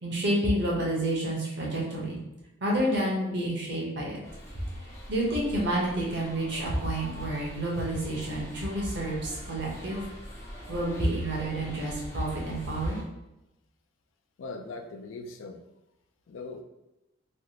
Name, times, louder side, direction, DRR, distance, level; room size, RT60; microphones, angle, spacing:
voice 1, 0.0-2.2 2.6-4.2 5.1-10.0 10.7-13.0, right 1 dB, 55° right, -3 dB, 0.9 m, -29 dB
sound 1, 4.2-13.0, equal, 15° left, 0.5 m, -43 dB
voice 2, 14.4-15.6 16.3-16.6, left 3 dB, 75° left, 5 dB, 0.4 m, -40 dB
3.3 x 2.4 x 2.8 m, 0.95 s
head